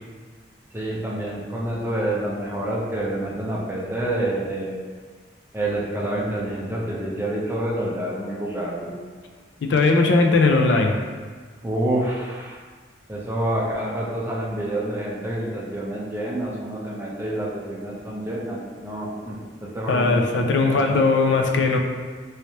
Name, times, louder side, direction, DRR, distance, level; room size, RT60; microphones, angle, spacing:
voice 1, 0.7-4.8 5.5-9.0 11.6-12.6 13.1-21.2, right 1 dB, 15° right, -5 dB, 0.5 m, -28 dB
voice 2, 9.6-11.0 19.9-21.8, left 3 dB, 80° left, 3 dB, 0.4 m, -19 dB
3.1 x 3.1 x 2.8 m, 1.5 s
head